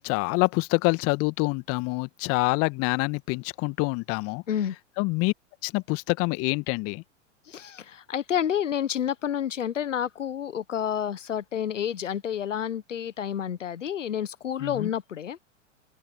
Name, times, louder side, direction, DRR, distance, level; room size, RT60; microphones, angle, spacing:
voice 1, 0.0-4.4 5.0-5.3 5.6-7.0 14.6-14.9, left 27 dB, 35° left, 1.6 m, -26 dB
voice 2, 7.5-15.4, left 9 dB, 70° left, 1.4 m, -29 dB
open air
figure-of-eight pair, 100°, 38 cm